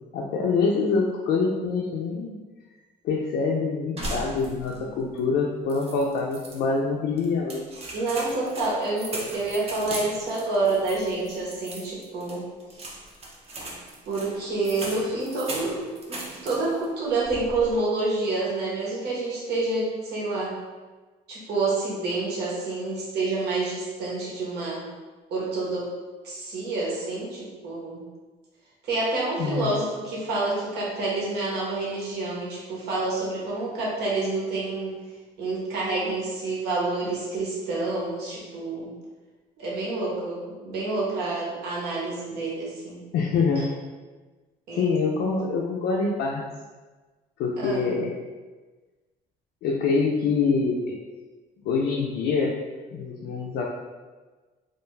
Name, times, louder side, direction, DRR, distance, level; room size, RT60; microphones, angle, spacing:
voice 1, 0.1-2.3 3.0-7.6 29.4-29.7 43.1-43.7 44.7-46.4 47.4-48.1 49.6-50.9 51.6-52.6 52.9-53.6, left 4 dB, 75° left, -2 dB, 0.4 m, -25 dB
sound 1, 4.0-4.9 5.2-5.3 5.7-6.6 7.2-16.9 17.2-17.7, right 1 dB, 35° right, 0.6 m, -38 dB
voice 2, 7.9-12.5 14.1-20.6 21.3-24.8 25.3-25.9 26.2-28.0 28.8-35.0 35.4-38.9 39.6-43.0 43.6-43.7 44.7-44.9 47.6-47.9, right 3 dB, 75° right, -5 dB, 0.9 m, -28 dB
2.3 x 2.2 x 3.1 m, 1.3 s
cardioid pair, 110°, 17 cm